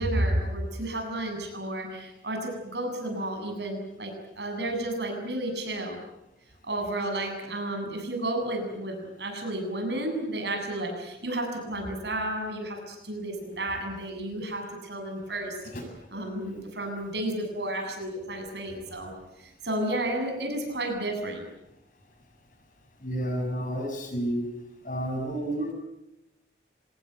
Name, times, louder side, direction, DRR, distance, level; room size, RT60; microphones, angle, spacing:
voice 1, 0.0-6.0 6.6-15.6 16.1-19.1 19.4-21.4, right 1 dB, 75° right, 4 dB, 7.8 m, -32 dB
voice 2, 23.0-24.5 24.8-25.7, right 1 dB, 45° left, 3 dB, 7.1 m, -30 dB
25.5 x 19.5 x 9.2 m, 0.90 s
head